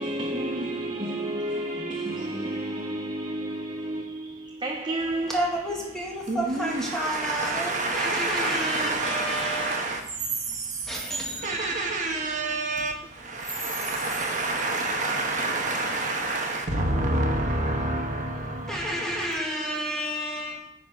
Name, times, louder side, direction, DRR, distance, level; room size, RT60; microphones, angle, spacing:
voice 1, 0.0-5.4, right 1 dB, 25° right, 0.7 m, -31 dB
voice 2, 5.3-9.8 10.8-12.0 18.7-20.6, equal, 5° left, 1.7 m, -30 dB
voice 3, 6.3-19.3, right 2 dB, 45° right, 1.2 m, -28 dB
9.4 x 4.2 x 5.3 m
head